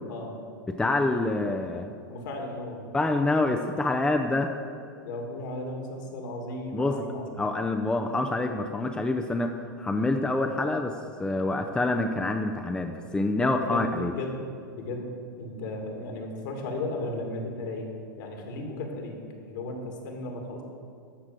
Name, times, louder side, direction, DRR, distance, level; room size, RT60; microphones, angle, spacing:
voice 1, 0.1-0.4 2.0-2.9 5.0-7.4 13.3-14.4 14.7-17.9 18.2-19.2 19.4-20.6, left 2 dB, 65° left, 2 dB, 2.4 m, -35 dB
voice 2, 0.7-2.0 2.9-4.5 6.7-7.0 7.4-14.1, left 2 dB, 10° left, 4 dB, 0.6 m, -27 dB
13.0 x 4.9 x 7.4 m, 2.3 s
hypercardioid pair, 105°, 11 cm